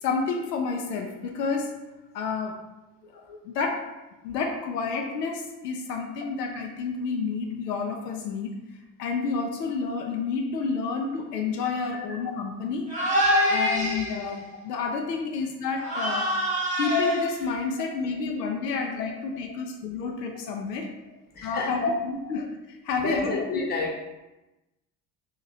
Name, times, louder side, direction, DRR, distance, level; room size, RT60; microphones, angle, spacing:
voice 1, 0.0-1.8 2.1-2.6 3.0-3.9 4.2-8.6 9.0-12.9 13.5-16.4 16.8-20.9 21.4-23.4, left 4 dB, 75° left, 2 dB, 0.6 m, -30 dB
sound 1, 12.9-14.3 15.8-17.7, left 1 dB, 15° right, 0.9 m, -25 dB
voice 2, 21.3-21.9 22.2-22.4 23.0-24.0, left 3 dB, 20° left, -1 dB, 0.8 m, -29 dB
2.9 x 2.8 x 3.7 m, 1.0 s
figure-of-eight pair, 60°, 49 cm